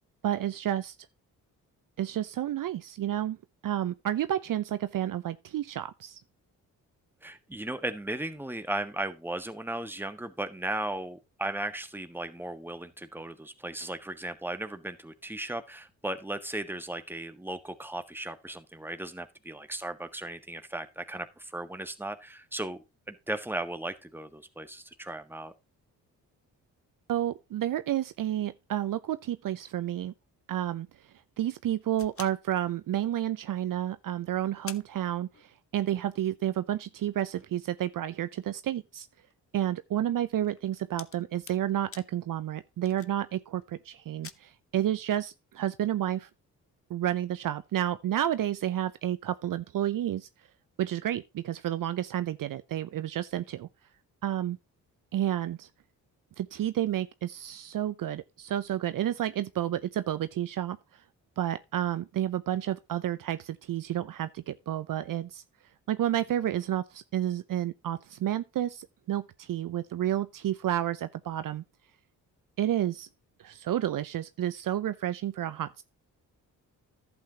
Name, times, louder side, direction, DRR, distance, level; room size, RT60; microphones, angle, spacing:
voice 1, 0.2-0.9 2.0-3.4 3.6-6.2 27.1-30.1 30.5-30.9 31.4-39.1 39.5-46.3 46.9-50.3 50.8-53.7 54.2-54.6 55.1-55.7 56.4-60.8 61.4-65.4 65.9-71.6 72.6-73.1 73.4-75.8, right 11 dB, 55° right, 0.7 m, -30 dB
voice 2, 7.2-25.5, right 1 dB, 5° right, 1.5 m, -36 dB
sound 1, 32.0-33.4 33.9-34.0 34.2-34.3 34.7-35.9 36.2-36.3 36.8-43.7 44.0-44.3, left 7 dB, 35° left, 0.9 m, -50 dB
11.0 x 8.1 x 2.9 m
supercardioid pair, 50°, 38 cm